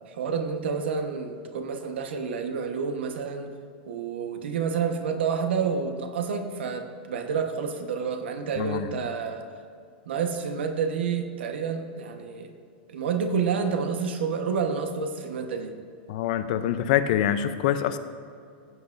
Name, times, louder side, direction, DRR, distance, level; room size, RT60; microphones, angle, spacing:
voice 1, 0.0-3.5 3.9-9.5 10.0-12.5 12.9-15.7, right 6 dB, 85° right, 6 dB, 1.2 m, -29 dB
voice 2, 8.6-8.9 16.1-18.0, left 10 dB, 45° left, 11 dB, 0.5 m, -25 dB
15.5 x 8.1 x 2.6 m, 2.4 s
supercardioid pair, 175°, 6 cm